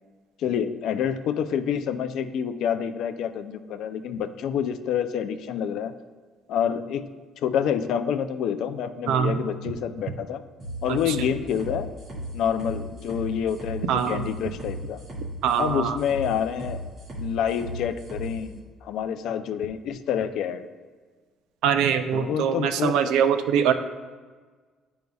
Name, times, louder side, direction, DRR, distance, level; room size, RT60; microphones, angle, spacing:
voice 1, 0.4-6.0 6.5-7.1 7.4-10.4 10.8-11.9 12.3-15.0 15.6-16.8 17.2-20.7 22.1-23.0, left 8 dB, 60° left, 10 dB, 0.4 m, -28 dB
sound 1, 10.6-18.4, right 1 dB, 35° right, 1.9 m, -36 dB
voice 2, 10.9-11.3 13.9-14.2 15.4-16.0 21.6-23.7, right 8 dB, 80° right, 9 dB, 0.5 m, -23 dB
11.0 x 5.2 x 2.3 m, 1.4 s
cardioid pair, 175°, 0 cm